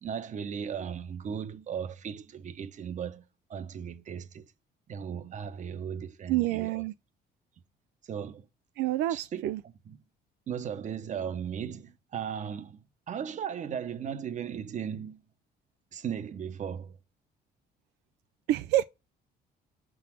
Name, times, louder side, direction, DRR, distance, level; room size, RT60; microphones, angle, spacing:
voice 1, 0.0-3.2 3.5-4.5 4.9-6.8 8.1-8.5 9.1-10.0 10.5-15.2 15.9-17.0, right 8 dB, 45° right, 1.0 m, -37 dB
voice 2, 6.3-6.9 8.8-9.6 18.5-18.8, right 14 dB, 85° right, 0.4 m, -27 dB
5.8 x 3.9 x 6.0 m
cardioid pair, 110°, 17 cm